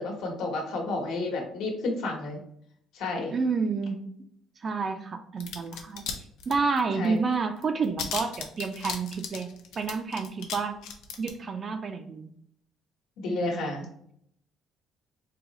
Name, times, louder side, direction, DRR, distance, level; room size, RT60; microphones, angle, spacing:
voice 1, 0.0-2.4 2.9-3.3 7.0-7.1 13.2-13.8, left 2 dB, 70° left, 0 dB, 1.1 m, -31 dB
voice 2, 3.3-4.0 4.6-6.0 6.5-10.8 11.2-12.3 13.3-13.7, right 4 dB, 30° right, 8 dB, 0.3 m, -29 dB
sound 1, 5.4-6.1 6.4-7.1 7.3-7.4 7.6-10.6 10.8-11.3, left 7 dB, 90° left, 0.6 m, -35 dB
3.8 x 2.8 x 3.0 m, 0.69 s
cardioid pair, 170°, 0 cm